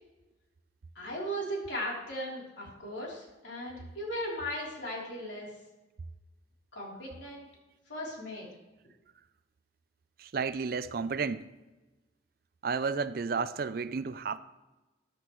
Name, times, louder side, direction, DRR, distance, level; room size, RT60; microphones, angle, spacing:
voice 1, 0.9-5.5 6.7-7.4 7.9-8.5, equal, 75° left, 3.4 m, -37 dB
voice 2, 10.2-11.5 12.6-14.4, right 5 dB, 50° right, 0.4 m, -32 dB
14.0 x 10.0 x 3.1 m
head